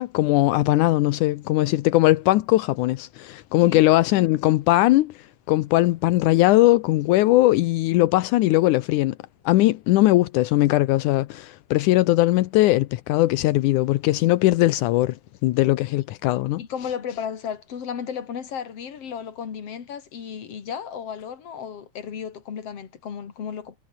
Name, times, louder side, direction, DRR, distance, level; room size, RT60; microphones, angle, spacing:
voice 1, 0.0-9.2 9.5-15.2 15.4-16.6, left 17 dB, 75° left, 1.9 m, -20 dB
voice 2, 16.6-23.7, left 7 dB, 45° left, 3.2 m, -34 dB
omnidirectional pair, 4.3 m